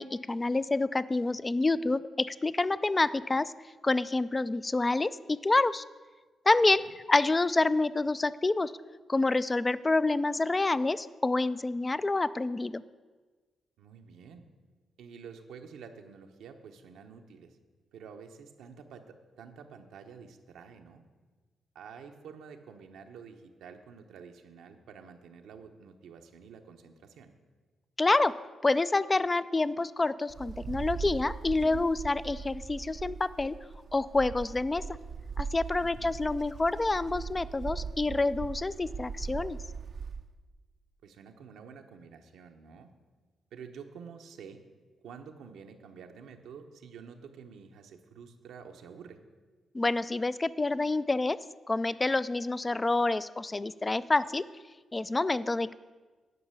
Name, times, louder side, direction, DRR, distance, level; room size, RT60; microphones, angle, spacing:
voice 1, 0.0-3.5 3.8-5.8 6.5-8.7 9.1-12.8 28.0-33.6 33.9-34.9 35.4-39.6 49.7-54.5 54.9-55.7, left 2 dB, 25° left, 16 dB, 0.4 m, -28 dB
voice 2, 13.8-14.4 15.0-17.6 17.9-21.0 21.7-27.3 35.8-36.1 41.0-42.9 43.5-44.6 45.0-49.2, right 6 dB, 85° right, 5 dB, 1.0 m, -49 dB
Wind, 30.3-40.3, right 5 dB, 60° right, 0.5 m, -40 dB
11.0 x 5.5 x 8.1 m, 1.4 s
cardioid pair, 70°, 0 cm